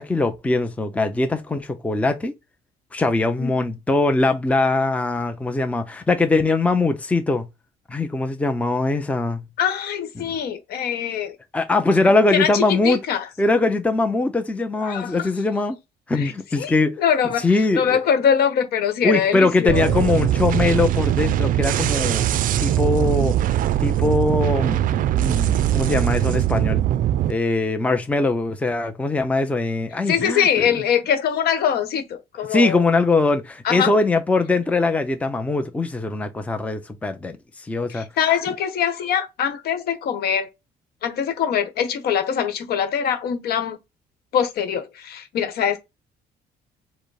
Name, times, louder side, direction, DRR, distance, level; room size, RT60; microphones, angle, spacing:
voice 1, 0.0-2.3 2.9-7.5 7.9-9.4 10.2-10.4 11.5-13.0 13.4-15.8 16.1-17.0 17.4-18.0 19.0-22.3 22.6-23.3 23.8-26.8 27.3-30.7 32.5-37.4 37.7-38.1, left 3 dB, 10° left, 0.6 m, -21 dB
voice 2, 9.6-11.3 12.3-13.2 14.8-15.3 16.1-16.3 16.6-17.4 17.7-20.1 30.1-32.8 33.6-33.9 37.9-40.5 41.0-43.8 44.3-45.8, left 8 dB, 70° left, 1.1 m, -23 dB
sound 1, 19.7-27.3, right 12 dB, 55° right, 0.4 m, -21 dB
4.9 x 2.1 x 4.7 m
cardioid pair, 110°, 17 cm